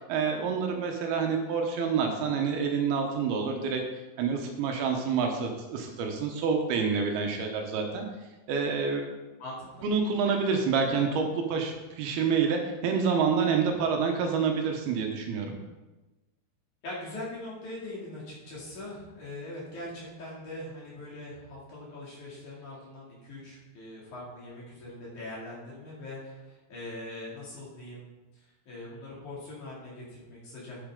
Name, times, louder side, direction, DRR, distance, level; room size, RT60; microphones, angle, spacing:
voice 1, 0.1-3.8 4.2-8.1 8.5-9.0 9.8-15.6, right 5 dB, 75° right, 3 dB, 2.7 m, -27 dB
voice 2, 9.4-9.9 16.8-28.0 28.7-30.8, left 1 dB, 50° left, -6 dB, 3.7 m, -41 dB
9.2 x 8.5 x 3.7 m, 1.1 s
omnidirectional pair, 4.7 m